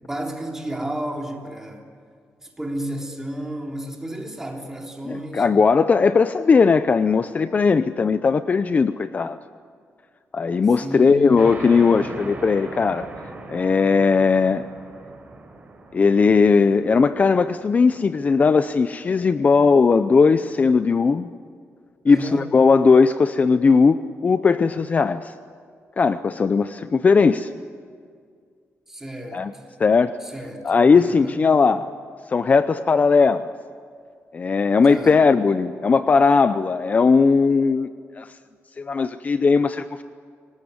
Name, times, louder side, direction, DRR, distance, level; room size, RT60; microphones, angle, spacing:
voice 1, 0.0-1.8 2.4-5.5 10.8-11.4 22.1-22.5 28.9-29.5 30.2-31.4 34.8-35.2, right 1 dB, 10° right, 1 dB, 3.4 m, -32 dB
voice 2, 5.1-9.4 10.3-13.1 13.5-14.6 15.9-21.3 22.0-25.3 26.0-27.5 29.3-29.5 29.8-30.2 30.6-31.9 32.3-33.5 34.3-37.9 38.2-38.3 38.8-40.0, left 5 dB, 35° left, 12 dB, 0.6 m, -18 dB
sound 1, 11.4-18.5, right 2 dB, 30° right, 4.6 m, -39 dB
26.0 x 18.5 x 9.7 m, 2.1 s
wide cardioid pair, 145°, 5 cm